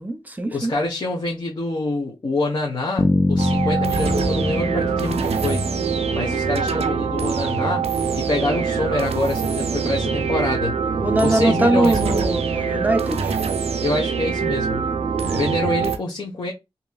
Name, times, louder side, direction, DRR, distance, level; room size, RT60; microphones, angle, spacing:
voice 1, 0.0-0.7 11.0-13.4 15.2-15.5, right 2 dB, 15° right, 0.7 m, -22 dB
voice 2, 0.5-5.7 6.1-7.9 8.1-10.8 11.2-12.2 13.8-14.8 15.3-16.5, left 2 dB, 50° left, 1.0 m, -26 dB
Bass guitar, 3.0-6.9, left 2 dB, 25° left, 0.3 m, -24 dB
sound 1, 3.4-16.0, right 6 dB, 90° right, 0.5 m, -24 dB
2.9 x 2.8 x 2.3 m
wide cardioid pair, 80°, 10 cm